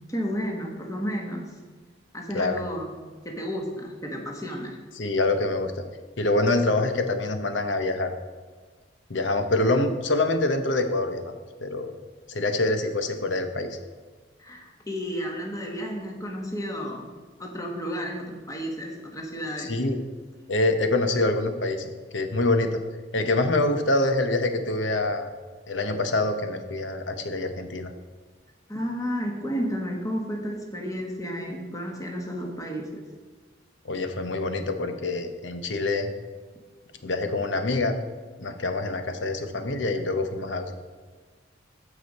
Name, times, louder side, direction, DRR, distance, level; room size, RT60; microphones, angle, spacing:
voice 1, 0.1-1.5 2.1-3.0 3.2-4.8 14.4-17.1 17.4-19.8 28.7-33.1, equal, 20° left, 1 dB, 1.4 m, -32 dB
voice 2, 5.0-5.8 6.2-8.1 9.1-11.3 11.6-11.9 12.3-13.8 19.6-20.0 20.5-22.8 23.1-25.3 25.7-27.9 33.8-36.1 37.0-37.9 38.4-40.7, left 2 dB, 70° left, 7 dB, 0.9 m, -25 dB
14.0 x 5.0 x 4.1 m, 1.4 s
head